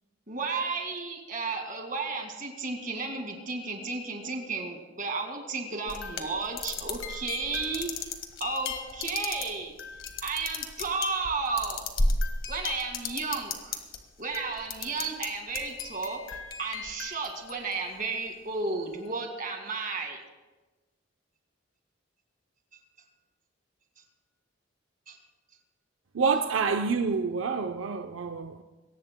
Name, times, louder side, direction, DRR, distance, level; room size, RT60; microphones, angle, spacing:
voice 1, 0.3-8.1 8.4-9.8 10.2-11.9 12.5-13.8 14.2-16.2 16.6-20.2 25.1-25.2, right 4 dB, 40° right, 2.1 m, -33 dB
sound 1, 5.9-14.0 14.3-15.3 15.5-17.9, left 3 dB, 85° left, 1.6 m, -34 dB
voice 2, 26.1-28.6, right 5 dB, 85° right, 0.6 m, -27 dB
22.0 x 18.0 x 2.2 m
head